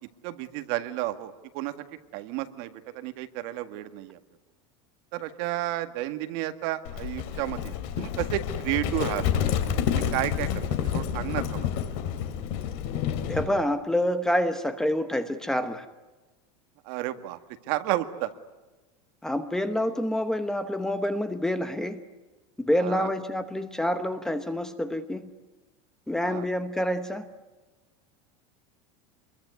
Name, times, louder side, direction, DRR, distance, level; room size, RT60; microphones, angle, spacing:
voice 1, 0.2-1.7 2.1-4.2 5.1-9.4 9.9-10.6 10.9-11.7 16.9-17.4 17.7-18.3 22.8-23.1 26.2-26.5, right 15 dB, 50° right, 9 dB, 1.8 m, -32 dB
Livestock farm animals working animals, 6.8-13.5, left 9 dB, 50° left, 2.7 m, -29 dB
voice 2, 13.3-15.9 19.2-22.0 22.6-25.3 26.1-27.2, left 1 dB, 5° left, 9 dB, 1.0 m, -27 dB
27.5 x 22.5 x 9.5 m, 1.2 s
supercardioid pair, 170°, 16 cm